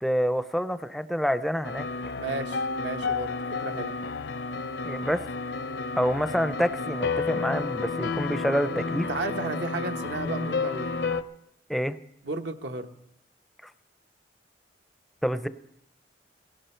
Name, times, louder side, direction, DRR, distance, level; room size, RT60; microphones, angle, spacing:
voice 1, 0.0-1.9 4.8-5.3 5.9-9.1 11.7-12.0 15.2-15.5, equal, ahead, 11 dB, 0.5 m, -27 dB
sound 1, 1.6-11.2, left 4 dB, 80° left, 0.7 m, -31 dB
voice 2, 2.2-3.9 9.1-10.9 12.2-12.9, right 3 dB, 75° right, 6 dB, 1.1 m, -33 dB
17.5 x 17.0 x 4.5 m, 0.78 s
head